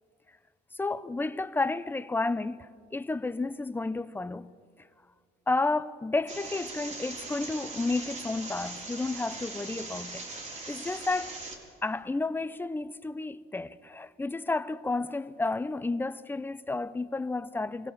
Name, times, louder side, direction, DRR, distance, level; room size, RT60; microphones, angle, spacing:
voice 1, 0.7-2.6 2.9-4.5 5.5-10.3 10.7-11.4 11.8-17.9, left 3 dB, 10° left, 0.7 m, -31 dB
sound 1, 6.3-11.5, right 3 dB, 45° right, 4.3 m, -40 dB
24.0 x 16.5 x 7.4 m
cardioid pair, 110°, 17 cm